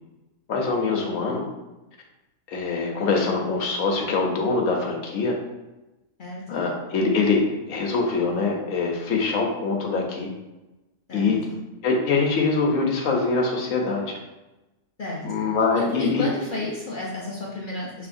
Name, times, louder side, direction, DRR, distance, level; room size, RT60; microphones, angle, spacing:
voice 1, 0.5-1.4 2.5-5.3 6.5-10.3 11.1-11.4 11.8-14.1 15.2-16.3, left 4 dB, 70° left, 0 dB, 1.1 m, -24 dB
voice 2, 6.2-6.7 11.1-11.6 15.0-18.1, left 2 dB, 50° left, -4 dB, 0.6 m, -32 dB
5.7 x 3.0 x 2.5 m, 1.0 s
omnidirectional pair, 1.5 m